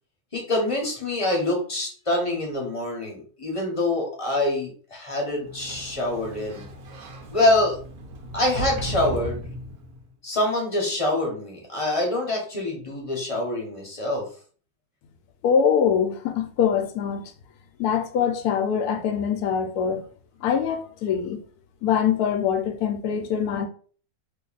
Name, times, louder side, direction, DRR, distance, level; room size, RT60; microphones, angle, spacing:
voice 1, 0.3-6.7 7.3-7.8 8.3-9.4 10.2-14.3, left 1 dB, 25° left, 0.9 m, -25 dB
Sliding door, 5.4-10.1, right 1 dB, 75° right, 1.2 m, -36 dB
voice 2, 15.4-17.2 17.8-20.1 20.4-21.4 21.8-23.7, left 7 dB, 80° left, 1.1 m, -23 dB
2.9 x 2.6 x 3.9 m
omnidirectional pair, 1.6 m